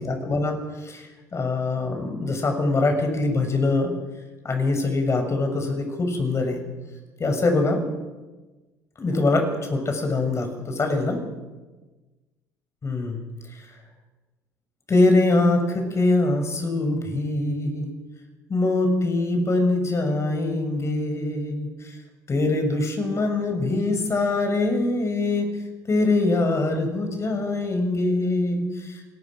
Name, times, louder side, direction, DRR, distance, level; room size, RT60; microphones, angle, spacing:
voice 1, 0.0-3.9 4.4-6.7 7.2-7.8 9.0-11.2 12.8-13.2 13.5-13.7 14.9-17.9 18.5-22.0 22.3-25.5 25.9-29.0, left 2 dB, 35° left, 5 dB, 6.9 m, -23 dB
26.0 x 20.0 x 6.5 m, 1.2 s
hypercardioid pair, 65°, 9 cm